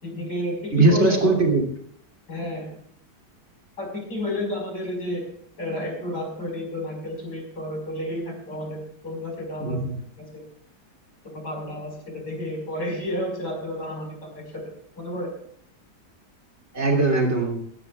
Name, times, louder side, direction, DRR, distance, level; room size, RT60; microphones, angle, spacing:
voice 1, 0.0-1.4 2.3-2.8 3.8-5.2 5.6-8.8 9.0-9.8 10.2-10.4 11.2-15.3, left 1 dB, 80° left, 1 dB, 5.8 m, -31 dB
voice 2, 0.7-1.6 9.6-9.9 16.7-17.6, right 3 dB, 40° right, 1 dB, 3.2 m, -20 dB
18.5 x 15.0 x 2.4 m, 0.65 s
omnidirectional pair, 1.8 m